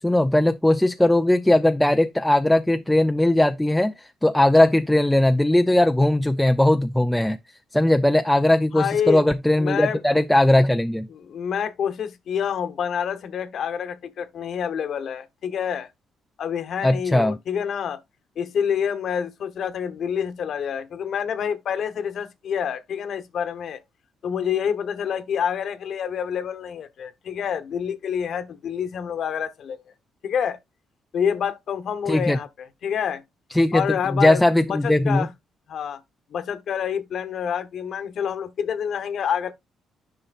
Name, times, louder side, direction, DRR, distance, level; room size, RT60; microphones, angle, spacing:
voice 1, 0.0-7.4 7.7-11.1 16.8-17.4 32.1-32.4 33.5-33.8 34.1-35.3, left 1 dB, 5° left, 0.5 m, -19 dB
voice 2, 8.7-9.2 9.6-10.0 11.1-15.9 16.4-18.0 18.4-23.8 24.2-29.8 30.2-30.6 31.1-33.2 33.7-34.4 34.7-35.3 35.7-36.0 36.3-39.5, left 8 dB, 65° left, 1.0 m, -27 dB
9.9 x 5.7 x 2.4 m
cardioid pair, 90°, 0 cm